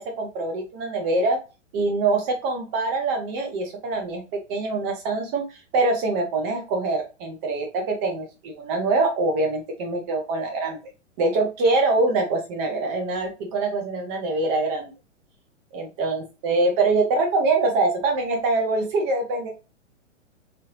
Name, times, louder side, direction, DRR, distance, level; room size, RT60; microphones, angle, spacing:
voice 1, 0.0-1.4 1.7-4.2 4.5-5.4 5.7-10.8 11.2-14.9 15.7-19.5, right 3 dB, 10° right, 3 dB, 0.3 m, -24 dB
3.6 x 3.2 x 2.9 m, 0.29 s
figure-of-eight pair, 115°, 37 cm